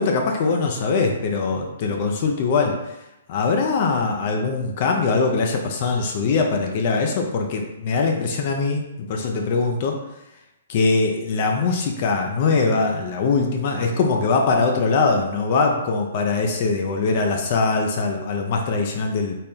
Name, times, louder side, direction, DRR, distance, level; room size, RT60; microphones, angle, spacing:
voice 1, 0.0-2.8 3.3-10.0 10.7-19.4, left 4 dB, 45° left, 2 dB, 0.5 m, -22 dB
4.2 x 2.1 x 3.6 m, 0.92 s
hypercardioid pair, 135°, 0 cm